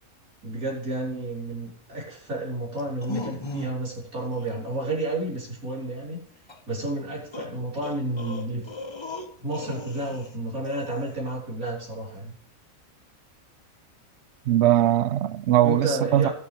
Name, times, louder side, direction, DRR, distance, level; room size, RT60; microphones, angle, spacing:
voice 1, 0.4-6.2 6.7-8.6 9.4-12.3 15.6-16.3, right 2 dB, 85° right, 4.5 m, -31 dB
sound 1, 2.8-4.0 4.3-4.6 6.5-6.6 7.3-10.3 10.6-11.2, left 3 dB, 25° left, 0.7 m, -37 dB
voice 2, 14.5-16.3, right 12 dB, 65° right, 0.7 m, -20 dB
19.0 x 6.9 x 3.3 m
omnidirectional pair, 1.5 m